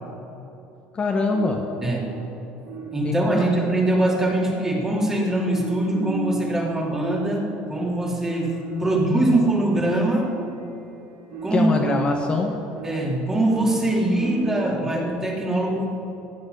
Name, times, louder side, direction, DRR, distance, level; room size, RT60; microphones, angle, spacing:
voice 1, 0.9-1.7 3.0-3.5 8.7-9.5 11.5-12.5, left 4 dB, 30° left, 1 dB, 1.2 m, -25 dB
sound 1, 1.3-14.8, right 3 dB, 70° right, 2.6 m, -36 dB
voice 2, 1.8-2.1 2.9-8.5 8.8-10.3 11.4-11.7 12.8-15.9, right 1 dB, 15° right, -2 dB, 2.7 m, -22 dB
15.5 x 10.5 x 5.5 m, 3.0 s
cardioid pair, 115°, 4 cm